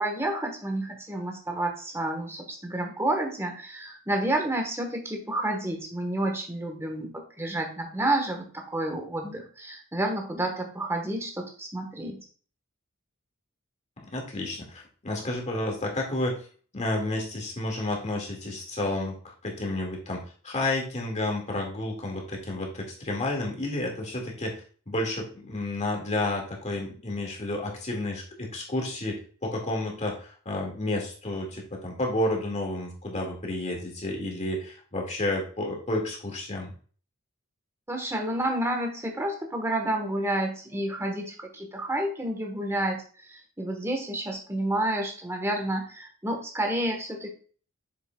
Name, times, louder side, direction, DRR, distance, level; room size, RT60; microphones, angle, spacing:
voice 1, 0.0-12.2 37.9-47.3, right 1 dB, 10° right, 3 dB, 1.3 m, -30 dB
voice 2, 14.0-16.3 16.7-24.6 24.9-36.7, left 1 dB, 35° left, 0 dB, 2.0 m, -31 dB
7.7 x 6.6 x 2.3 m, 0.41 s
head